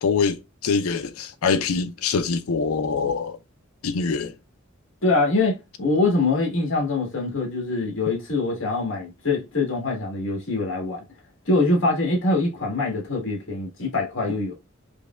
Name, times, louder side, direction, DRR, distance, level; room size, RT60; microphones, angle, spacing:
voice 1, 0.0-3.4 3.8-4.3, left 5 dB, 90° left, 0.5 m, -24 dB
voice 2, 5.0-11.0 11.4-14.5, left 3 dB, 65° left, 1.6 m, -24 dB
5.1 x 2.2 x 2.2 m
head